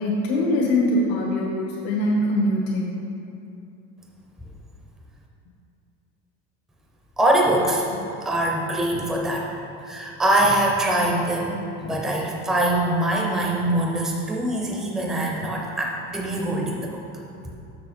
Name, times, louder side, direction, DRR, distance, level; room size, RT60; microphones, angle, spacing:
voice 1, 0.0-2.9, left 1 dB, 90° left, -4 dB, 1.4 m, -22 dB
voice 2, 7.2-7.9 8.2-9.5 9.8-17.0, right 1 dB, ahead, -1 dB, 0.4 m, -23 dB
6.6 x 6.4 x 4.2 m, 2.6 s
cardioid pair, 170°, 31 cm